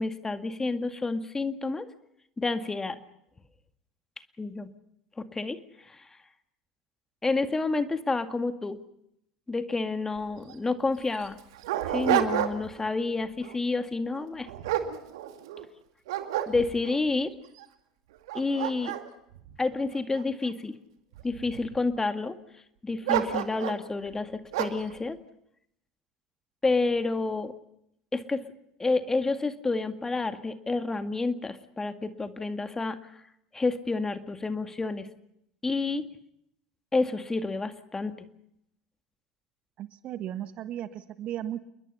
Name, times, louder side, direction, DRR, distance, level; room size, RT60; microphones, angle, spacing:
voice 1, 0.0-1.9 2.4-3.0 4.4-4.7 5.2-6.1 7.2-8.8 9.5-11.4 11.9-14.5 16.5-17.3 18.3-18.9 19.6-20.8 21.2-22.4 22.8-25.2 26.6-27.5 28.1-28.4 28.8-33.1 33.5-35.1 35.6-36.1 36.9-38.3, left 3 dB, 15° left, 9 dB, 2.1 m, -29 dB
Dog, 10.2-10.3 10.5-10.6 11.2-12.8 13.2-13.6 14.1-15.6 16.1-17.0 17.6-17.7 18.1-20.5 21.1-21.8 23.0-23.9 24.5-24.9, right 12 dB, 65° right, 2.2 m, -30 dB
voice 2, 39.8-41.6, right 11 dB, 45° right, 12 dB, 1.4 m, -35 dB
29.5 x 22.0 x 5.7 m, 0.77 s
figure-of-eight pair, 70°, 3 cm